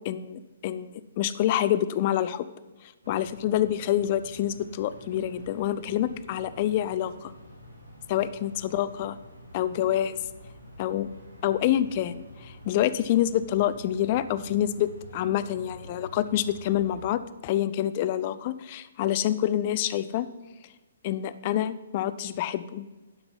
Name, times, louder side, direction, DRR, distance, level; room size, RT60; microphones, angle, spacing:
voice 1, 0.0-2.5 2.8-7.3 8.1-9.2 9.5-10.2 10.8-11.1 11.4-20.3 21.0-22.8, left 12 dB, 35° left, 14 dB, 0.5 m, -27 dB
sound 1, 3.0-17.1, equal, 85° right, 2.8 m, -48 dB
11.5 x 6.0 x 5.3 m, 1.2 s
figure-of-eight pair, 125°, 0 cm